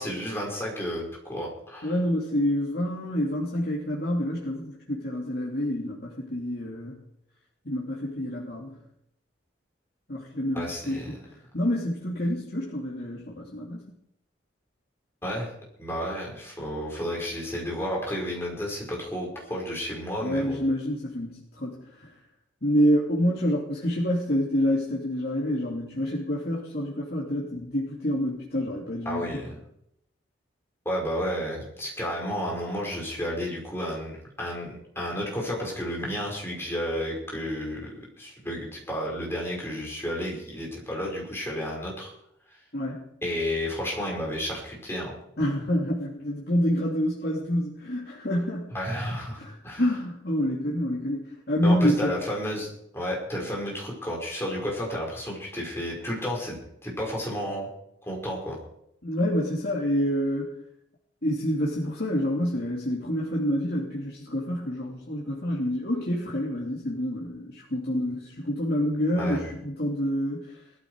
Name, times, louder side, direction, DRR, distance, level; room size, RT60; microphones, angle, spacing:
voice 1, 0.0-1.9 10.5-11.1 15.2-15.5 15.8-20.6 29.0-29.6 30.8-37.8 38.2-42.1 43.2-45.1 48.7-49.8 51.6-57.7 58.1-58.6 69.2-69.4, equal, 15° left, -2 dB, 5.1 m, -32 dB
voice 2, 1.8-7.0 7.6-8.8 10.1-11.2 11.5-13.8 20.2-22.1 22.6-29.4 42.7-43.0 45.4-48.7 49.4-52.1 59.0-60.5 61.2-70.6, equal, 55° left, -4 dB, 2.7 m, -27 dB
19.0 x 13.5 x 4.8 m, 0.76 s
head